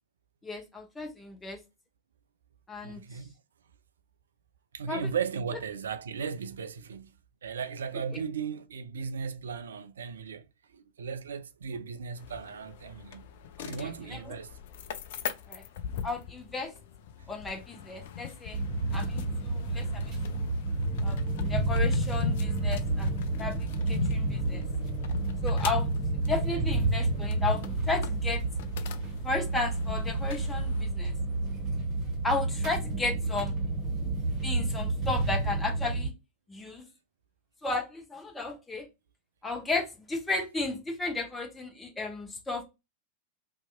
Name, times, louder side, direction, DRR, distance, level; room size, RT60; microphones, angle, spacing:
voice 1, 0.4-1.6 2.7-3.2 4.9-5.1 13.6-14.4 15.5-15.6 16.0-16.7 17.3-18.6 18.9-20.5 21.0-24.7 25.4-25.9 26.3-28.4 29.2-31.2 32.2-33.5 34.4-36.1 36.5-36.9 37.6-38.9 39.4-42.6, left 3 dB, 10° left, 0.8 m, -34 dB
voice 2, 2.8-3.3 4.7-7.1 7.4-10.5 10.7-13.3 13.6-14.6 15.5-15.6 26.5-26.7, right 6 dB, 65° right, 0.3 m, -36 dB
sound 1, 12.2-30.8, left 8 dB, 55° left, 0.3 m, -41 dB
sound 2, 18.5-36.1, right 2 dB, 30° right, 1.1 m, -30 dB
2.8 x 2.3 x 2.4 m
figure-of-eight pair, 90°, 0 cm